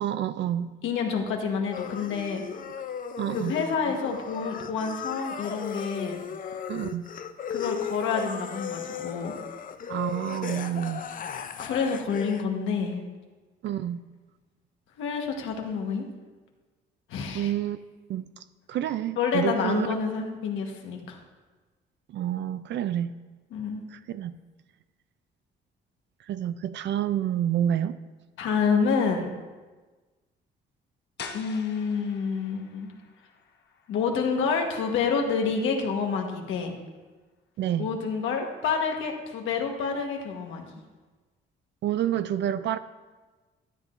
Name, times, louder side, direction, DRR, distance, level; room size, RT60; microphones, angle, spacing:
voice 1, 0.0-0.7 3.2-3.6 6.7-7.1 9.9-11.0 13.6-14.0 17.3-17.8 18.1-18.2 18.7-19.9 22.1-23.1 23.9-24.3 26.3-28.0 37.6-37.9 41.8-42.8, right 10 dB, 65° right, 13 dB, 0.4 m, -28 dB
voice 2, 0.8-2.4 3.3-6.2 7.5-9.3 11.6-13.0 15.0-16.1 17.1-17.5 19.2-21.2 23.5-23.8 28.4-29.3 31.3-32.9 33.9-36.8 37.8-40.6, left 5 dB, 85° left, 2 dB, 1.3 m, -28 dB
sound 1, 1.7-12.4, left 7 dB, 45° left, 0.6 m, -36 dB
sound 2, 31.2-36.8, left 5 dB, 60° left, 1.0 m, -47 dB
12.5 x 7.4 x 2.5 m, 1.3 s
cardioid pair, 90°, 20 cm